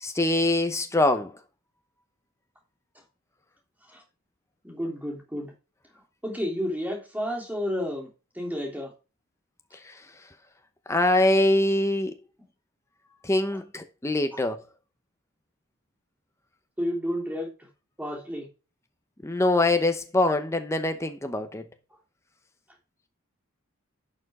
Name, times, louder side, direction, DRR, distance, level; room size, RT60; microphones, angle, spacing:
voice 1, 0.0-1.3 9.9-10.0 10.9-12.2 13.2-14.6 19.2-21.6, left 2 dB, 15° left, 0.8 m, -24 dB
voice 2, 4.6-5.5 6.2-8.1 8.3-8.9 13.5-13.6 14.3-14.4 16.8-17.7 18.0-18.5, equal, 10° right, 3.2 m, -31 dB
11.5 x 6.5 x 3.7 m
head